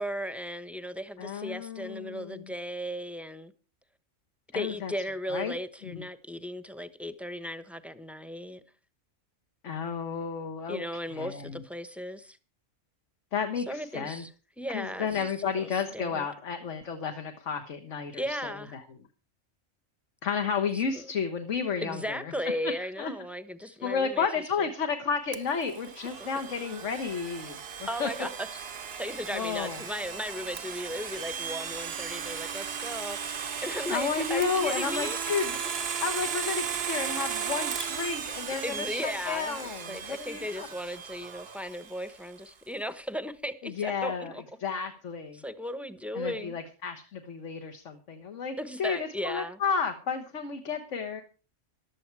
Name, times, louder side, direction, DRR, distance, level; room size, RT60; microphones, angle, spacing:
voice 1, 0.0-3.5 4.5-8.6 10.7-12.4 13.6-14.3 14.6-16.3 18.1-18.7 20.7-21.1 21.8-24.3 24.6-24.7 26.2-26.3 27.9-35.2 38.6-44.4 45.3-46.6 48.6-49.6, equal, ahead, 0.9 m, -36 dB
voice 2, 1.2-2.5 4.5-4.9 5.3-5.5 5.8-6.0 9.6-10.8 11.1-11.6 13.3-14.2 14.7-18.8 20.2-22.3 22.8-23.1 23.6-27.6 28.0-28.1 29.3-29.8 33.9-35.6 36.0-40.7 43.6-44.3 44.6-45.4 46.1-51.2, left 6 dB, 70° left, 1.6 m, -32 dB
Domestic sounds home sounds, 25.3-42.1, right 7 dB, 55° right, 1.1 m, -36 dB
15.0 x 12.0 x 4.6 m
omnidirectional pair, 1.3 m